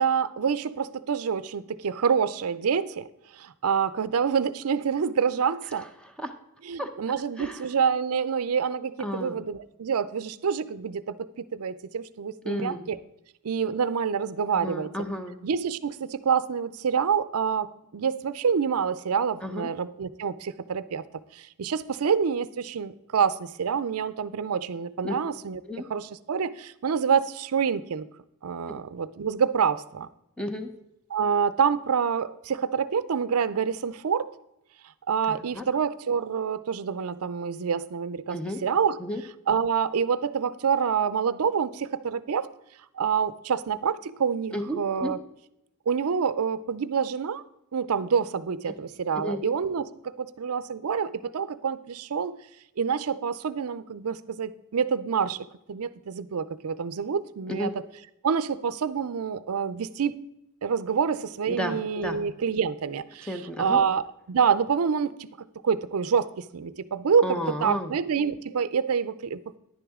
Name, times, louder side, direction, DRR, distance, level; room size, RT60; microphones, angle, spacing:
voice 1, 0.0-3.1 3.3-5.9 6.7-13.0 13.4-14.9 15.4-17.7 17.9-21.0 21.3-25.6 25.9-28.1 28.4-30.1 31.1-34.3 35.1-39.0 39.5-42.5 43.0-45.2 45.9-47.4 47.7-52.4 52.8-57.7 58.2-60.1 60.6-63.3 63.6-65.3 65.6-67.3 67.6-69.4, right 6 dB, 75° right, 16 dB, 0.5 m, -27 dB
voice 2, 5.8-6.3 6.8-6.9 7.4-7.7 9.0-9.4 12.4-12.8 14.5-15.4 19.4-19.7 25.0-25.2 25.7-25.9 30.4-30.7 35.3-35.6 38.3-38.6 39.0-39.2 44.5-45.1 49.2-49.4 57.5-57.7 61.5-62.2 63.3-63.8 67.2-67.9, equal, 5° left, 5 dB, 0.8 m, -32 dB
10.5 x 10.0 x 3.6 m, 0.84 s
head